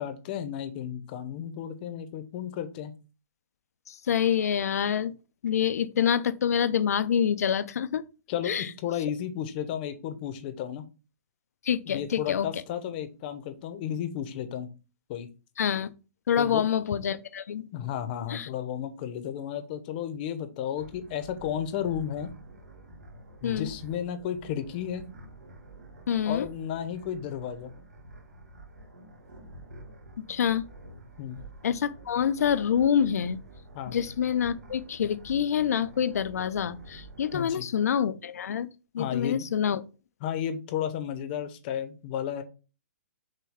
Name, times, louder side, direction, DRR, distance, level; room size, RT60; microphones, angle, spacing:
voice 1, 0.0-3.0 8.3-10.9 11.9-14.7 15.1-15.3 16.4-16.6 17.7-22.3 23.4-25.1 26.3-27.7 31.2-31.4 33.7-34.0 37.3-37.6 39.0-39.5 40.2-42.4, left 9 dB, 35° left, 0.7 m, -33 dB
voice 2, 3.9-5.1 5.4-8.0 8.4-8.7 11.6-12.5 15.6-15.9 16.3-17.6 18.3-18.5 23.4-23.7 26.1-26.5 30.3-30.6 31.6-33.4 33.9-38.7 38.9-39.8, left 8 dB, 75° left, 0.5 m, -26 dB
sound 1, 20.8-37.5, right 1 dB, 85° right, 1.8 m, -48 dB
6.4 x 2.3 x 3.5 m
hypercardioid pair, 145°, 9 cm